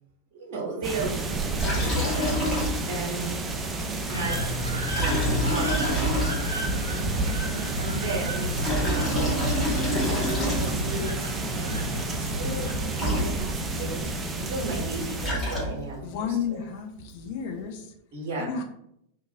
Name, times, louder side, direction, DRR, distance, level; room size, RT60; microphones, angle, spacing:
voice 1, 0.3-1.2 1.8-2.5 2.9-3.4 4.1-4.5 4.9-6.2 7.8-9.7 10.0-11.7 12.2-16.6 18.1-18.5, right 3 dB, 50° right, -1 dB, 0.8 m, -35 dB
sound 1, 0.8-15.3, right 3 dB, 15° right, 0.3 m, -31 dB
Liquid, 1.6-3.1 3.4-3.5 4.8-6.7 8.4-11.0 12.7-12.8 12.9-13.8 14.9-16.1, equal, 25° left, 1.2 m, -27 dB
sound 2, 4.1-12.9, left 1 dB, 85° right, 0.4 m, -33 dB
voice 2, 16.0-18.0 18.4-18.6, left 7 dB, 50° left, 3 dB, 0.5 m, -32 dB
2.8 x 2.4 x 2.6 m, 0.75 s
figure-of-eight pair, 90°, 0 cm